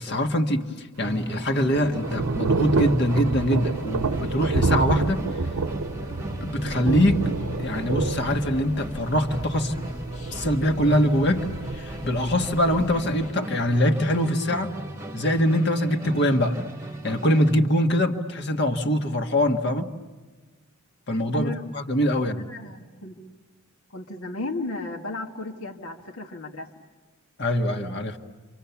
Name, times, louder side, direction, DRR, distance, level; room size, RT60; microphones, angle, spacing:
voice 1, 0.0-5.2 6.4-9.7 10.3-11.5 11.7-14.7 15.1-16.6 17.0-19.9 21.1-21.5 21.7-22.5 27.4-28.2, equal, 50° left, 5 dB, 1.7 m, -23 dB
Musical instrument, 1.0-17.7, right 1 dB, 15° right, 1.3 m, -37 dB
Thunder / Rain, 1.0-12.9, right 3 dB, 90° right, 0.8 m, -29 dB
sound 1, 3.7-13.3, equal, 30° left, 1.3 m, -39 dB
voice 2, 22.2-23.2 23.9-26.7, left 2 dB, 80° left, 2 dB, 1.9 m, -34 dB
30.0 x 26.5 x 7.1 m, 1.3 s
head